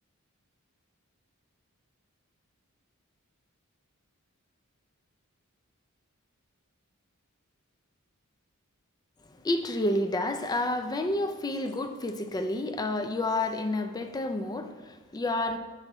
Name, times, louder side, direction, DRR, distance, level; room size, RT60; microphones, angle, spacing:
voice 1, 9.3-15.6, left 2 dB, 20° left, 7 dB, 0.3 m, -30 dB
6.8 x 5.2 x 3.0 m, 1.3 s
head